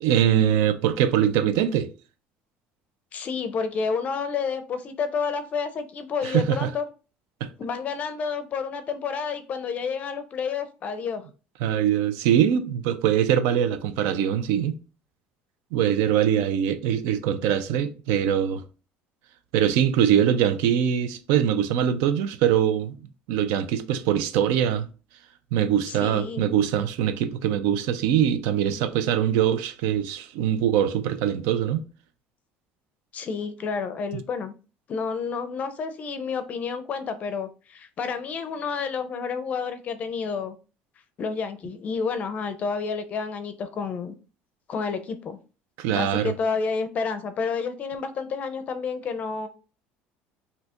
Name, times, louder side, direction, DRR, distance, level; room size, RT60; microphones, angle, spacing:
voice 1, 0.0-1.9 6.2-6.7 7.4-7.5 11.6-14.8 15.7-18.6 19.5-23.0 23.3-24.9 25.5-31.9 45.8-46.3, right 9 dB, 80° right, 0.4 m, -23 dB
voice 2, 3.1-6.9 7.6-11.3 25.9-26.5 33.1-34.5 34.9-40.6 41.2-44.1 44.7-45.4 45.9-49.5, left 5 dB, 35° left, 0.5 m, -30 dB
2.7 x 2.4 x 4.2 m
cardioid pair, 150°, 4 cm